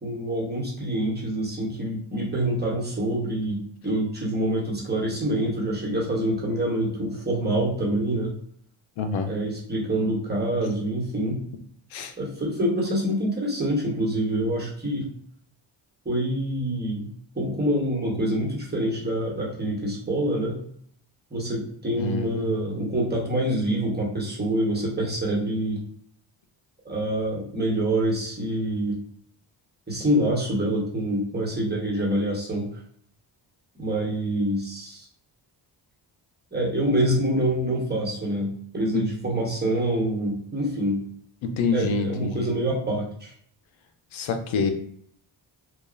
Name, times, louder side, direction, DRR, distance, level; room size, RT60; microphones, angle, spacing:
voice 1, 0.0-8.3 9.3-11.5 12.2-15.1 16.0-17.1 17.3-20.6 21.3-25.8 26.8-29.0 29.9-32.7 33.8-35.1 36.5-41.0 41.7-43.3, right 1 dB, 20° right, -3 dB, 1.1 m, -26 dB
voice 2, 9.0-9.3 11.9-12.1 21.9-22.6 38.9-39.0 41.4-42.5 44.1-44.7, left 4 dB, 85° left, 6 dB, 0.6 m, -27 dB
2.9 x 2.3 x 2.5 m, 0.63 s
cardioid pair, 85°, 46 cm